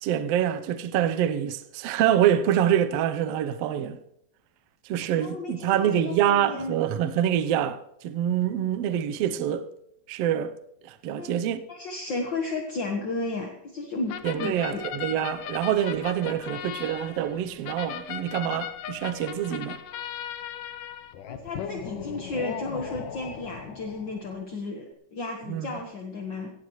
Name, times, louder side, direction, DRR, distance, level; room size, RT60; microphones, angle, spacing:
voice 1, 0.0-4.0 4.8-9.7 10.1-10.5 10.9-11.6 14.2-19.8 25.5-25.7, right 10 dB, 75° right, 1.5 m, -26 dB
voice 2, 5.1-6.7 11.1-11.3 11.7-14.8 21.3-26.5, left 3 dB, 55° left, 1.3 m, -33 dB
sound 1, 14.1-24.4, left 9 dB, 75° left, 2.5 m, -38 dB
16.5 x 16.0 x 3.2 m
omnidirectional pair, 3.9 m